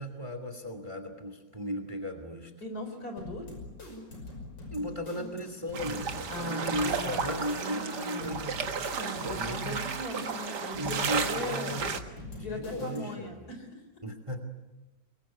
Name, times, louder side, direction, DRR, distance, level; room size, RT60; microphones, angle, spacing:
voice 1, 0.0-2.5 4.7-8.5 8.8-9.8 10.7-11.9 12.2-13.4 14.0-14.4, equal, 15° right, 8 dB, 2.5 m, -36 dB
voice 2, 2.6-3.5 6.3-8.5 9.0-11.8 12.4-13.8, left 1 dB, 55° left, 5 dB, 4.6 m, -39 dB
sound 1, 3.2-13.3, left 2 dB, 85° left, 6.5 m, -44 dB
sound 2, 5.7-12.0, right 6 dB, 65° right, 2.1 m, -33 dB
24.0 x 23.0 x 8.5 m, 1.1 s
omnidirectional pair, 1.9 m